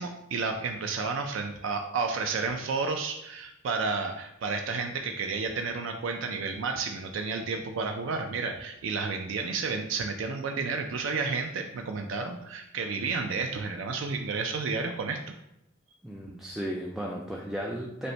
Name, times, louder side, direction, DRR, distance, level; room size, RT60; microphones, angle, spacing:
voice 1, 0.0-15.2, right 4 dB, 75° right, 4 dB, 0.4 m, -31 dB
voice 2, 16.0-18.1, equal, ahead, -2 dB, 0.3 m, -35 dB
5.2 x 2.1 x 4.3 m, 0.84 s
head